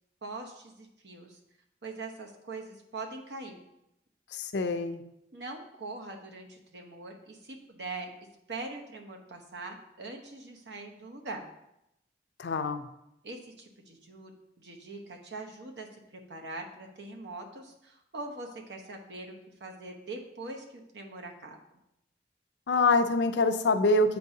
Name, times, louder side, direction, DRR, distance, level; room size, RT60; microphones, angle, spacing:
voice 1, 0.2-1.4 1.8-3.6 5.3-8.1 8.5-11.5 13.2-14.3 14.6-15.9 16.3-19.3 19.6-20.6 20.9-21.6, right 3 dB, 75° right, 2 dB, 0.9 m, -42 dB
voice 2, 4.3-5.0 12.4-12.9 22.7-24.2, left 2 dB, 80° left, 8 dB, 0.5 m, -25 dB
8.6 x 4.5 x 2.8 m, 0.83 s
head